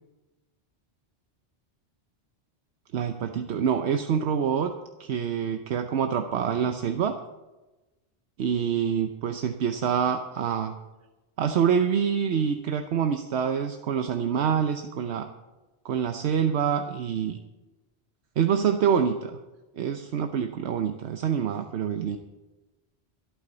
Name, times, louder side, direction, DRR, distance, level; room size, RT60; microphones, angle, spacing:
voice 1, 2.9-4.7 5.0-7.2 8.4-10.8 11.4-15.3 15.8-17.4 18.4-19.4 19.8-22.2, right 7 dB, 75° right, 7 dB, 1.0 m, -26 dB
25.5 x 8.7 x 4.0 m, 1.1 s
omnidirectional pair, 1.1 m